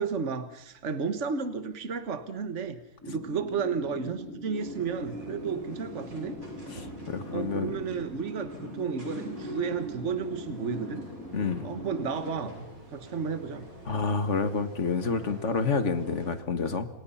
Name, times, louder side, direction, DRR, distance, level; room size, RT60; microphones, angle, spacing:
voice 1, 0.0-2.8 3.1-6.4 7.3-11.0 11.6-13.7, right 5 dB, 55° right, 10 dB, 1.7 m, -32 dB
sound 1, 3.0-12.3, left 1 dB, 10° left, 4.1 m, -41 dB
sound 2, 4.5-16.4, right 1 dB, 70° right, 8.1 m, -46 dB
voice 2, 6.7-7.7 11.3-11.7 13.9-16.9, left 4 dB, 55° left, 10 dB, 2.1 m, -29 dB
29.0 x 27.5 x 5.8 m, 0.78 s
omnidirectional pair, 1.5 m